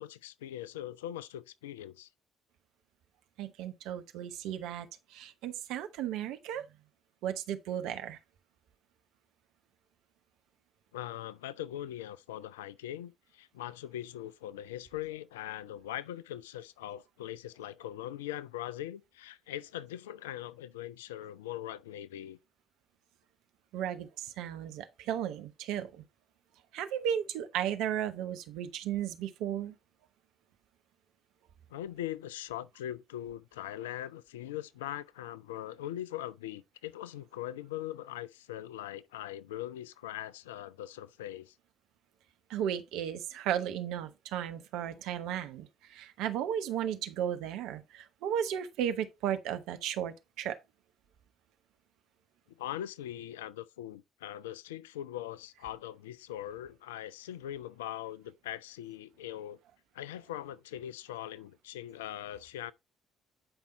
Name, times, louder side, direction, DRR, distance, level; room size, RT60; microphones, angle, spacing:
voice 1, 0.0-2.1 10.9-22.4 31.7-41.5 52.6-59.6 59.9-62.7, left 12 dB, 75° left, 0.4 m, -41 dB
voice 2, 3.4-4.9 5.1-6.6 7.2-8.2 23.7-26.0 26.7-29.7 42.5-50.6, right 10 dB, 60° right, 1.0 m, -35 dB
8.9 x 5.4 x 4.0 m
figure-of-eight pair, 50°, 0 cm